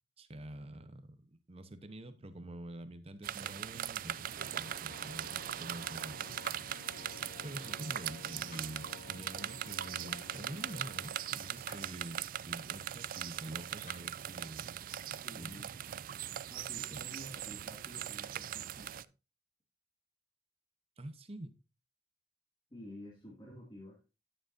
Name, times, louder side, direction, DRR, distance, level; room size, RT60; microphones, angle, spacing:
voice 1, 0.2-6.4 7.4-14.8 15.3-15.6 16.9-17.0 21.0-21.6, right 1 dB, 35° right, 0.9 m, -47 dB
sound 1, 3.2-19.0, right 11 dB, 50° right, 0.3 m, -40 dB
sound 2, 3.9-11.7, left 4 dB, 65° left, 0.4 m, -54 dB
sound 3, 6.4-6.9 8.4-9.0 11.5-12.0 13.7-14.2, left 1 dB, 45° left, 4.5 m, -56 dB
voice 2, 7.6-7.9 15.2-15.7 16.5-19.1 22.7-24.0, left 1 dB, 25° left, 2.3 m, -51 dB
10.0 x 8.9 x 2.6 m
head